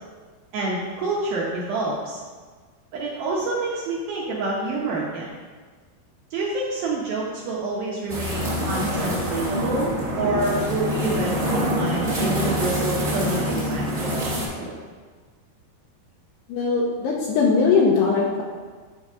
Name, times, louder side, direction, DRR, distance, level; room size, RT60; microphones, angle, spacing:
voice 1, 0.5-2.2 2.9-5.3 6.3-14.8, right 2 dB, 75° right, -4 dB, 2.4 m, -28 dB
sound 1, 8.1-14.4, equal, 40° right, 1.0 m, -25 dB
voice 2, 16.5-18.4, left 4 dB, 80° left, -3 dB, 2.7 m, -20 dB
9.8 x 4.0 x 4.9 m, 1.5 s
omnidirectional pair, 5.1 m